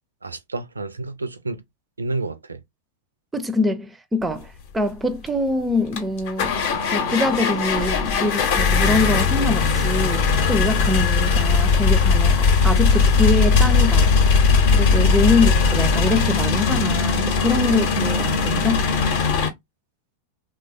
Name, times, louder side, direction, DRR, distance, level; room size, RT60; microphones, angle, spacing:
voice 1, 0.2-1.6 2.0-2.6 15.3-15.6, right 3 dB, 80° right, 0.4 m, -30 dB
voice 2, 3.3-6.6 6.9-14.1 14.7-18.8, left 2 dB, 10° right, 0.4 m, -24 dB
sound 1, 5.3-5.4 5.9-19.5, left 5 dB, 50° left, 0.7 m, -19 dB
3.1 x 2.2 x 2.5 m
figure-of-eight pair, 90°, 0 cm